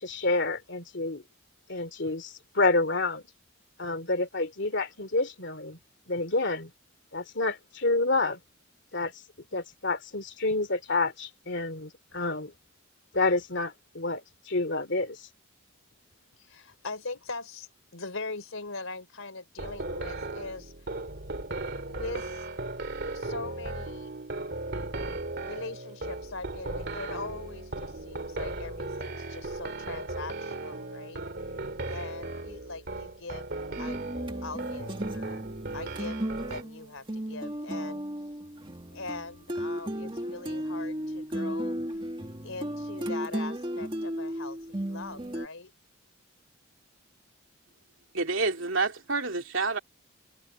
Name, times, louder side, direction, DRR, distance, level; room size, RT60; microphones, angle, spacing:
voice 1, 0.0-1.2 1.7-3.2 3.8-5.8 6.1-6.7 7.1-8.4 8.9-9.1 9.5-12.5 13.1-14.2 14.5-15.2, left 3 dB, 55° left, 3.0 m, -28 dB
voice 2, 16.4-20.7 21.9-22.5 23.1-24.1 25.4-31.2 31.9-33.5 33.8-34.0 34.4-35.4 35.7-38.0 38.9-41.8 42.4-45.7, left 3 dB, 80° left, 3.6 m, -41 dB
sound 1, 19.6-36.6, right 2 dB, 55° right, 2.4 m, -37 dB
sound 2, 33.8-45.5, equal, 25° right, 1.9 m, -35 dB
voice 3, 48.1-49.8, right 3 dB, 70° right, 2.8 m, -28 dB
head